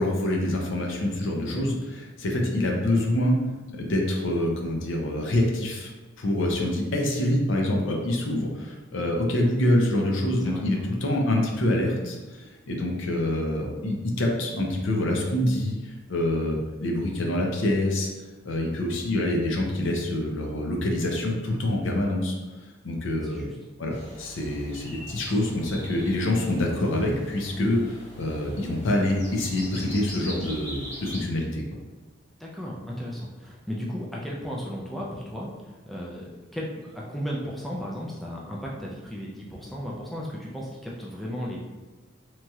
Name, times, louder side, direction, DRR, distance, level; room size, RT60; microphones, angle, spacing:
voice 1, 0.0-1.7 2.2-3.4 3.7-5.9 6.2-18.1 18.4-22.4 22.8-23.5 23.8-31.6, left 1 dB, 70° left, 0 dB, 0.5 m, -26 dB
voice 2, 10.4-10.9 23.2-23.6 32.4-41.6, equal, ahead, -4 dB, 0.3 m, -35 dB
sound 1, 23.9-31.2, equal, 30° left, 0.8 m, -43 dB
2.9 x 2.7 x 2.3 m, 1.3 s
head